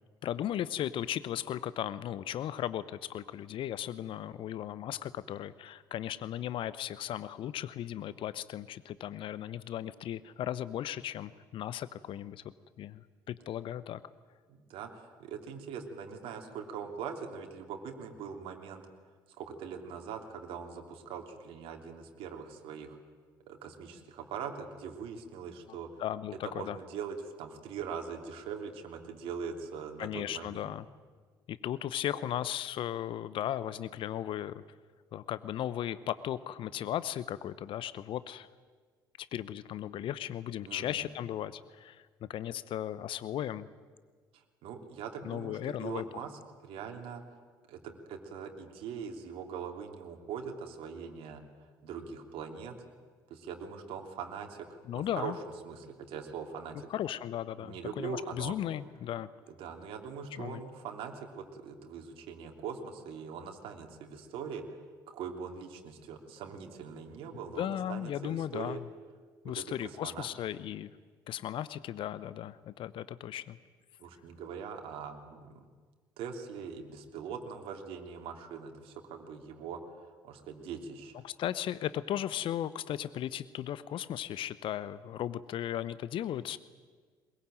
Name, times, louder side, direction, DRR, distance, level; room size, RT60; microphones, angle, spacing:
voice 1, 0.2-12.4 12.8-14.0 25.7-26.8 30.0-30.8 31.5-34.6 35.1-38.5 39.2-43.7 45.2-46.3 54.9-55.4 56.9-59.3 60.3-60.6 67.6-68.8 69.4-70.9 71.3-73.6 81.2-86.6, left 11 dB, 50° left, 16 dB, 0.9 m, -36 dB
voice 2, 14.5-18.8 19.4-23.0 23.5-26.0 26.4-30.7 40.7-41.1 44.3-46.3 46.6-47.2 47.7-51.4 51.8-52.8 53.3-54.7 54.9-55.3 55.6-56.9 57.6-58.5 59.6-64.6 65.1-68.8 69.4-70.3 74.0-75.6 76.2-79.8 80.2-81.2, right 6 dB, 60° right, 3 dB, 2.9 m, -42 dB
22.0 x 21.5 x 9.0 m, 1.5 s
figure-of-eight pair, 55°, 11 cm